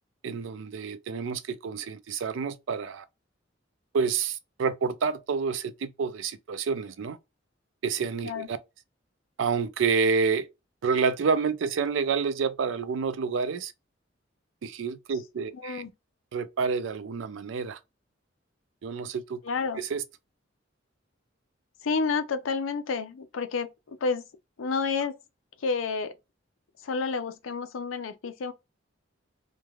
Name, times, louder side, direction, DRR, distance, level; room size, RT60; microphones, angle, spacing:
voice 1, 0.2-3.0 3.9-7.2 7.8-8.6 9.4-10.5 10.8-13.7 14.6-15.8 16.3-17.8 18.8-19.4 19.8-20.0, right 5 dB, 70° right, 0.4 m, -28 dB
voice 2, 15.5-15.9 19.4-19.8 21.8-24.2 24.6-25.2 25.6-26.2 26.8-28.5, left 4 dB, 85° left, 0.5 m, -30 dB
3.1 x 2.2 x 2.3 m
head